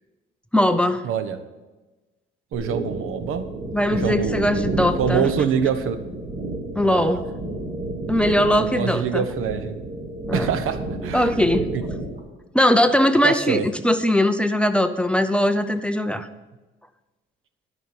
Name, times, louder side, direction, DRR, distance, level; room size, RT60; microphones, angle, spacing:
voice 1, 0.5-1.1 3.7-5.3 6.7-7.2 8.1-9.3 10.3-10.5 11.1-11.7 12.5-16.3, left 1 dB, 5° left, 9 dB, 0.5 m, -20 dB
voice 2, 1.0-1.4 2.5-3.5 3.9-6.0 6.8-7.2 8.6-9.7 10.3-11.3 11.7-11.8 13.2-13.7, right 7 dB, 85° right, 9 dB, 1.0 m, -25 dB
sound 1, 2.5-12.2, right 2 dB, 35° right, 2.5 m, -30 dB
12.5 x 5.9 x 7.1 m, 1.2 s
cardioid pair, 125°, 21 cm